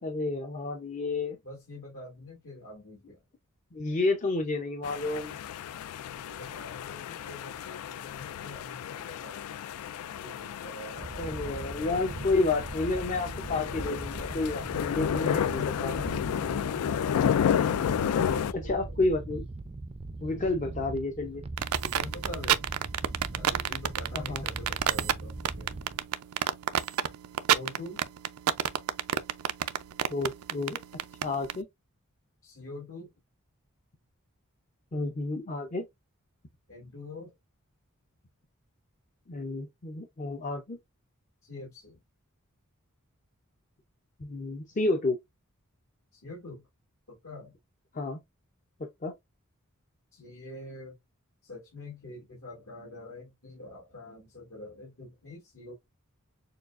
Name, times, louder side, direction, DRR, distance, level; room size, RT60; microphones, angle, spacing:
voice 1, 0.0-1.4 3.7-5.4 11.2-15.9 17.8-19.4 20.2-21.4 24.1-24.4 30.1-31.7 34.9-35.9 39.3-40.8 44.2-45.2 47.9-48.2 48.8-49.2, left 2 dB, 35° left, 0.6 m, -31 dB
voice 2, 1.4-3.2 6.1-9.5 10.1-12.0 15.5-16.9 18.1-18.7 21.8-22.7 23.3-25.7 27.5-28.1 32.4-33.1 36.7-37.3 41.4-42.0 46.1-46.6 47.1-47.6 50.1-51.0 51.4-55.7, left 2 dB, 70° left, 2.0 m, -45 dB
sound 1, 4.8-18.5, left 8 dB, 90° left, 0.3 m, -31 dB
sound 2, 11.0-26.0, right 2 dB, 25° right, 0.4 m, -40 dB
sound 3, 21.6-31.6, right 10 dB, 90° right, 0.4 m, -27 dB
6.6 x 2.3 x 2.4 m
head